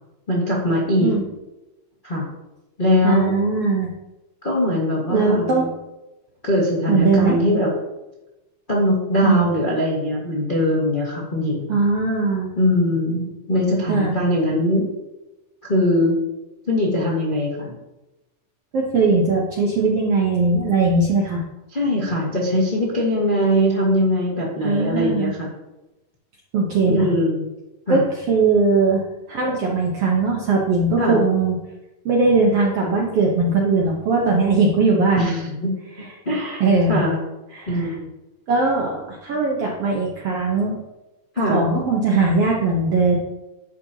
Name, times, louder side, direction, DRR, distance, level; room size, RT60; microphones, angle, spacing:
voice 1, 0.3-1.1 2.0-2.2 2.8-3.3 4.4-5.7 6.4-7.7 8.7-11.8 12.6-14.8 15.6-16.2 16.7-17.8 21.7-25.5 26.9-27.4 27.9-28.0 31.0-31.2 35.1-35.7 36.2-36.6 36.9-37.2 37.7-38.1 41.3-41.6, left 1 dB, 55° left, -5 dB, 0.5 m, -21 dB
voice 2, 3.0-3.9 5.1-5.7 6.9-7.4 9.2-9.5 11.7-12.5 13.9-14.2 18.7-21.4 24.6-25.3 26.5-27.1 27.9-29.0 29.3-31.6 32.0-35.3 36.0-36.1 36.6-37.0 37.5-37.9 38.5-40.8 41.4-43.2, right 3 dB, 70° right, -2 dB, 1.4 m, -19 dB
10.5 x 7.4 x 2.8 m, 0.99 s
omnidirectional pair, 4.0 m